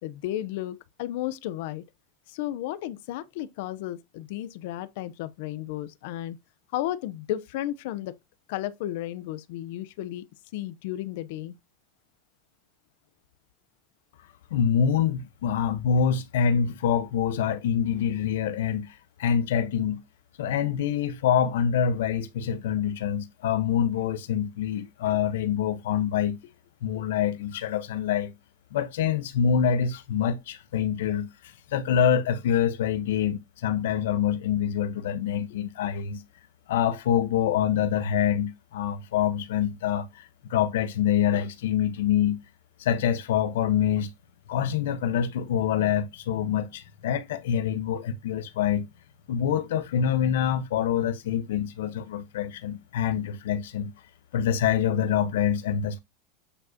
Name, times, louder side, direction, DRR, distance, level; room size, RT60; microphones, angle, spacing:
voice 1, 0.0-1.8 2.3-6.4 6.7-8.1 8.5-10.2 10.5-11.6, left 13 dB, 65° left, 0.8 m, -33 dB
voice 2, 14.5-20.0 20.4-26.4 26.8-28.3 28.7-31.3 31.7-36.2 36.7-42.4 42.8-44.1 44.5-48.9 49.3-53.9 54.3-56.0, left 8 dB, 90° left, 1.1 m, -26 dB
8.7 x 5.0 x 2.9 m
supercardioid pair, 155°, 0 cm